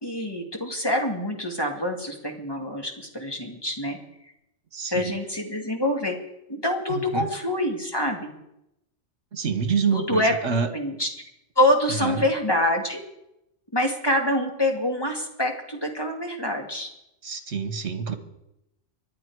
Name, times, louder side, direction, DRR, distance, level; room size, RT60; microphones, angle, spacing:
voice 1, 0.0-4.0 4.2-4.3 4.9-6.2 6.5-8.3 9.9-10.3 10.7-11.1 11.6-13.0 13.7-16.9, left 1 dB, 20° left, 2 dB, 2.2 m, -25 dB
voice 2, 4.7-5.1 6.9-7.3 9.3-10.7 11.9-12.2 17.2-18.1, right 6 dB, 70° right, 9 dB, 1.7 m, -27 dB
24.5 x 9.7 x 4.7 m, 0.83 s
omnidirectional pair, 1.2 m